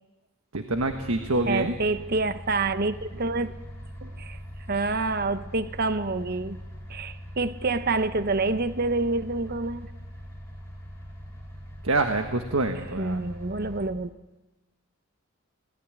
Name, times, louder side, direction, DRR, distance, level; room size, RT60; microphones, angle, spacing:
voice 1, 0.5-1.8 11.8-13.2, right 2 dB, 80° right, 1.5 m, -26 dB
sound 1, 0.7-13.8, equal, 10° left, 6.8 m, -42 dB
voice 2, 1.5-3.5 4.0-4.4 4.7-6.6 6.9-9.9 13.0-14.1, right 3 dB, 45° right, 0.8 m, -27 dB
26.0 x 18.5 x 9.0 m
head